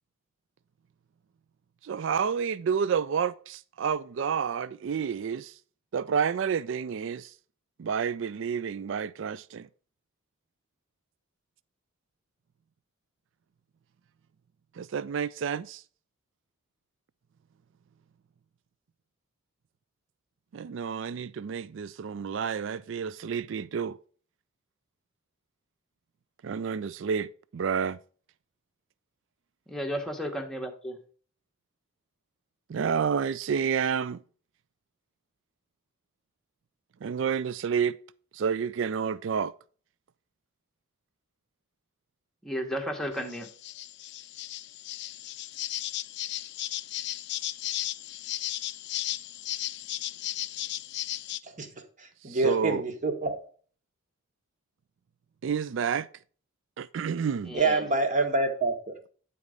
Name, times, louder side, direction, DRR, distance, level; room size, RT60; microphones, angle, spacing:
voice 1, 1.8-5.5 5.9-7.3 7.8-9.7 14.8-15.8 20.5-24.0 26.4-28.0 32.7-34.2 37.0-38.0 38.3-39.5 52.3-52.8 55.4-56.1 56.8-57.6, right 7 dB, 65° right, 0.4 m, -29 dB
voice 2, 29.7-31.0 42.4-43.5 57.4-57.8, equal, 5° left, 1.1 m, -33 dB
sound 1, 43.1-51.4, left 14 dB, 55° left, 0.4 m, -35 dB
voice 3, 51.4-53.5 57.5-58.9, right 3 dB, 40° right, 1.3 m, -27 dB
9.8 x 4.2 x 5.0 m
head